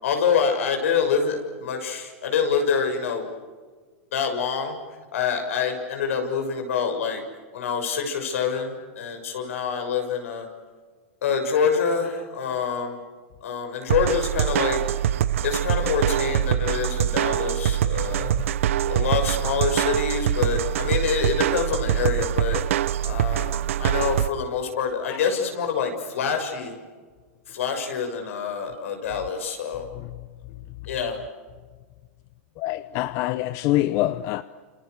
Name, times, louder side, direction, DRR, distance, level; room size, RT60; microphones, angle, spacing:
voice 1, 0.0-3.3 4.1-4.7 5.1-7.2 7.5-10.5 11.2-13.0 13.4-14.8 15.4-18.3 18.9-22.6 23.0-26.7 27.5-29.9 30.9-31.2, left 6 dB, 75° left, 6.8 m, -26 dB
sound 1, 13.9-24.3, right 11 dB, 75° right, 0.8 m, -24 dB
voice 2, 29.9-30.3 32.6-34.4, left 15 dB, 45° left, 0.8 m, -26 dB
29.0 x 29.0 x 6.7 m
hypercardioid pair, 130°, 7 cm